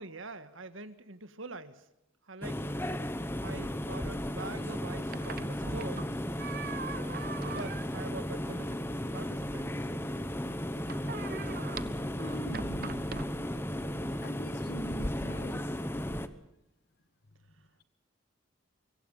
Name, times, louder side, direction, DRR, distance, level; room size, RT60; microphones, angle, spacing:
voice 1, 0.0-1.8 2.3-2.6 3.4-6.1 7.4-8.8 9.1-9.7, right 3 dB, 75° right, 1.7 m, -44 dB
sound 1, 2.4-16.3, equal, 10° left, 1.0 m, -35 dB
sound 2, 4.7-14.2, right 4 dB, 45° right, 0.9 m, -44 dB
voice 2, 12.2-13.0 14.2-16.0, equal, 50° left, 1.8 m, -43 dB
25.5 x 23.5 x 5.7 m
head